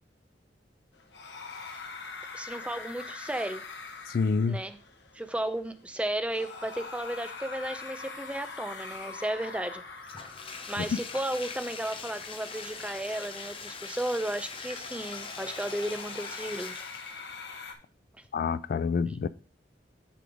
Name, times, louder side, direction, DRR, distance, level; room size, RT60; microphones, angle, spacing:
sound 1, 0.9-17.7, left 4 dB, 70° left, 1.1 m, -44 dB
voice 1, 2.3-3.6 4.5-4.8 5.1-9.8 10.7-16.7, right 1 dB, 5° right, 0.5 m, -34 dB
voice 2, 4.1-4.6 10.9-11.0 18.3-19.3, left 5 dB, 55° left, 0.3 m, -27 dB
Bathtub (filling or washing), 10.0-17.3, left 5 dB, 30° left, 0.7 m, -42 dB
10.5 x 3.5 x 4.9 m
head